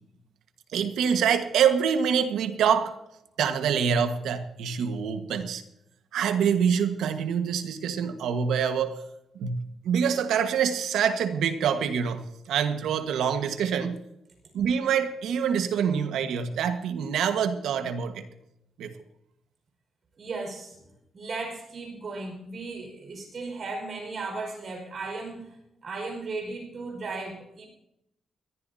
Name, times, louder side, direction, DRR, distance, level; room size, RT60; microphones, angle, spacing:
voice 1, 0.7-3.0 3.4-5.6 6.1-9.0 9.4-14.0 14.5-18.3 18.8-18.9, right 7 dB, 85° right, 8 dB, 1.5 m, -26 dB
voice 2, 20.2-20.8 21.1-25.6 25.8-27.7, right 3 dB, 45° right, 3 dB, 5.1 m, -36 dB
21.5 x 14.5 x 2.8 m, 0.81 s
cardioid pair, 120°, 0 cm